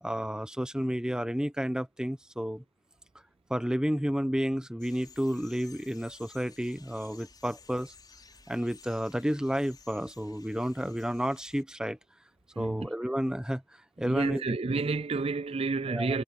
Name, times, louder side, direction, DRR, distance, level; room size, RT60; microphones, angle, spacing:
voice 1, 0.0-2.6 3.5-7.9 8.5-12.0 12.6-13.6 14.0-14.4 15.9-16.2, equal, 5° right, 0.9 m, -31 dB
sound 1, 4.8-11.6, left 5 dB, 20° left, 5.9 m, -55 dB
voice 2, 12.5-12.9 14.0-16.2, right 3 dB, 30° right, 0.4 m, -30 dB
head